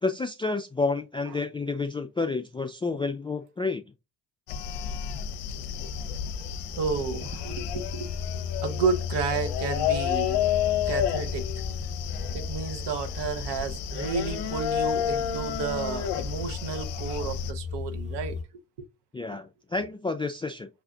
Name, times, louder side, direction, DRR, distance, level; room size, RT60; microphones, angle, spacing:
voice 1, 0.0-3.8 19.1-20.7, left 3 dB, 10° left, 0.3 m, -30 dB
sound 1, 4.5-17.5, left 9 dB, 60° left, 0.6 m, -31 dB
sound 2, 5.9-18.4, left 5 dB, 15° right, 1.0 m, -36 dB
voice 2, 6.7-8.1 8.6-10.4 10.9-11.5 12.3-18.4, right 5 dB, 55° right, 0.9 m, -31 dB
6.6 x 2.4 x 2.3 m
hypercardioid pair, 55°, 48 cm